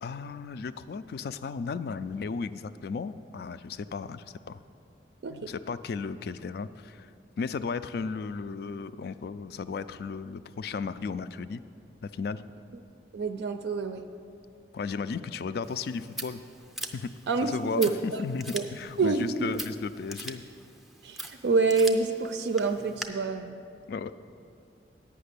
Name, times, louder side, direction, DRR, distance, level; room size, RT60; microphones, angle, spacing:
voice 1, 0.0-4.6 5.3-7.1 7.4-11.6 12.0-12.4 14.7-16.4 16.9-17.1 17.4-20.4 23.9-24.1, left 5 dB, 60° left, 13 dB, 0.3 m, -35 dB
voice 2, 13.1-14.0 17.3-18.2 18.5-18.7 19.0-19.3 21.0-23.6, right 4 dB, 70° right, 7 dB, 0.4 m, -27 dB
Scissors, 15.6-23.0, right 1 dB, ahead, 0.5 m, -42 dB
8.6 x 5.9 x 8.2 m, 2.5 s
head